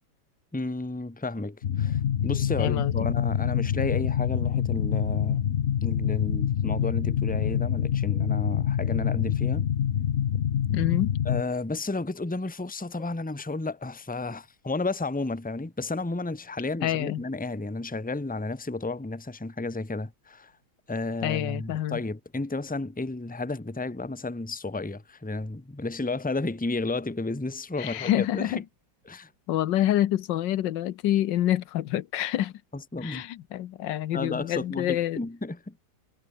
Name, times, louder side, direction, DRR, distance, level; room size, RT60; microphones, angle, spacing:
voice 1, 0.5-5.4 5.8-9.7 11.2-20.5 20.9-28.5 29.1-29.3 32.7-33.2 34.1-35.7, left 2 dB, 5° left, 1.1 m, -32 dB
sound 1, 1.6-11.4, left 9 dB, 55° left, 0.8 m, -26 dB
voice 2, 2.6-2.9 10.7-11.1 16.8-17.2 21.2-22.0 27.8-28.6 29.5-32.5 33.0-35.2, left 13 dB, 85° left, 1.5 m, -27 dB
omnidirectional pair, 1.9 m